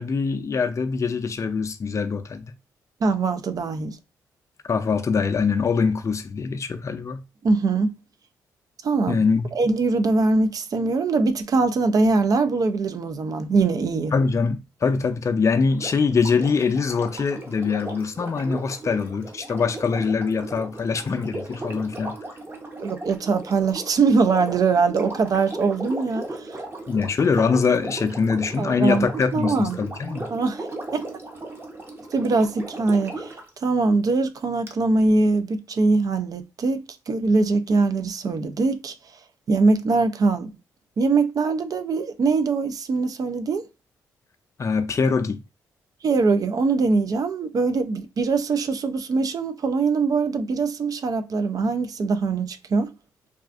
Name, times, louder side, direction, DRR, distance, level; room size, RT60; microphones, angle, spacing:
voice 1, 0.0-2.5 4.7-7.2 9.1-9.4 14.1-22.2 26.9-30.3 44.6-45.4, left 5 dB, 40° left, 0.4 m, -23 dB
voice 2, 3.0-4.0 7.4-7.9 8.8-9.2 9.5-14.1 22.8-26.5 28.6-29.1 29.3-29.8 30.3-30.7 30.9-31.0 32.1-38.9 39.5-40.5 41.0-43.7 46.0-52.9, right 3 dB, 50° right, 0.4 m, -22 dB
Sink (filling or washing), 15.7-33.5 34.7-34.8, right 2 dB, 25° right, 0.8 m, -37 dB
2.4 x 2.4 x 2.4 m
supercardioid pair, 50°, 8 cm